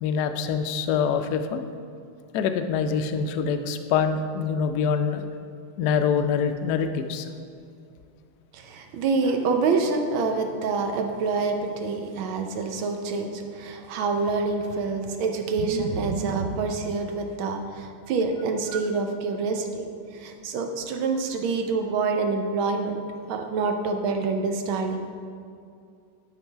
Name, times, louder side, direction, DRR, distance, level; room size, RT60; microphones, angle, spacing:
voice 1, 0.0-1.6 2.3-5.2 5.8-7.3, left 6 dB, 80° left, 8 dB, 0.9 m, -25 dB
voice 2, 8.5-19.8 20.1-23.0 23.3-25.1, right 4 dB, 75° right, 4 dB, 1.5 m, -26 dB
11.0 x 4.0 x 4.5 m, 2.4 s
omnidirectional pair, 2.3 m